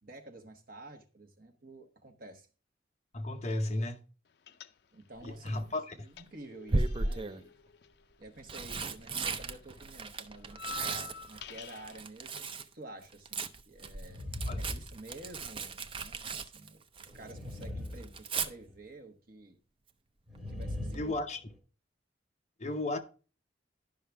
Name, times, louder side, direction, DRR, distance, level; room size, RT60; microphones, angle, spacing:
voice 1, 0.0-2.5 4.9-7.5 8.2-19.6 20.4-21.2, right 2 dB, 50° right, 1.2 m, -51 dB
voice 2, 3.1-4.0 5.2-6.0 14.5-14.6 20.9-21.4 22.6-23.0, left 2 dB, 35° left, 0.9 m, -34 dB
sound 1, 4.5-5.2 5.5-8.9 9.1-12.0, left 6 dB, 60° left, 0.5 m, -48 dB
Tearing, 5.2-5.7 6.7-7.4 8.2-12.7 13.0-17.3 17.6-18.5 20.3-20.6 20.9-21.0, right 3 dB, 30° right, 0.5 m, -36 dB
sound 2, 14.0-15.6 17.1-18.7 20.3-21.5, left 1 dB, ahead, 2.2 m, -40 dB
12.0 x 5.6 x 3.4 m
head